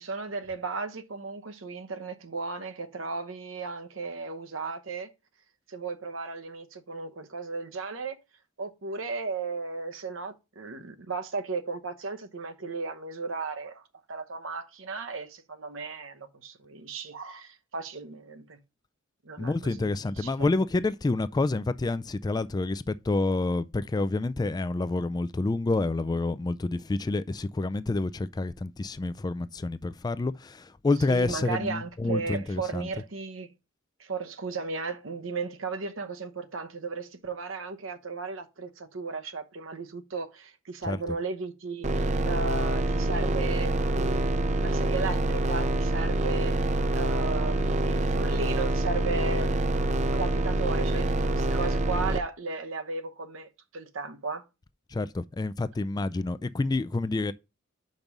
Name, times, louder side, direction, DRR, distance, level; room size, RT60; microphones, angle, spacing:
voice 1, 0.0-5.1 5.7-8.2 8.6-18.6 19.2-20.5 31.1-33.5 34.0-46.5 46.9-49.8 50.1-54.4, right 4 dB, 70° right, 0.9 m, -35 dB
voice 2, 19.4-32.9 40.8-41.2 54.9-57.3, left 2 dB, 20° left, 0.3 m, -28 dB
sound 1, 41.8-52.2, right 1 dB, 35° right, 0.5 m, -26 dB
5.3 x 5.3 x 6.0 m
head